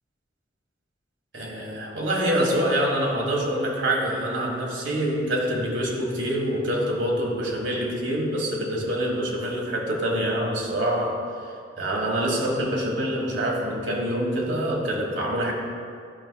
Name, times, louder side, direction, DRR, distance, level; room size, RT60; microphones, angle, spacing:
voice 1, 1.3-11.2 11.8-15.5, right 1 dB, 75° right, -1 dB, 1.4 m, -25 dB
12.0 x 5.8 x 2.3 m, 2.2 s
head